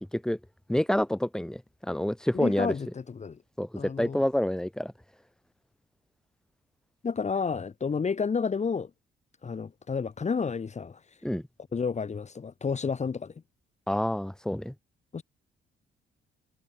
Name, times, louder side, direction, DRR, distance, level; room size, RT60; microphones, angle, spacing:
voice 1, 0.7-2.7 3.6-4.9 11.2-11.4 13.9-14.7, left 1 dB, 5° left, 3.2 m, -28 dB
voice 2, 2.3-3.4 3.8-4.2 7.0-8.9 9.4-11.0 11.7-13.3 15.1-15.2, left 5 dB, 35° left, 2.2 m, -30 dB
cardioid pair, 90°, 20 cm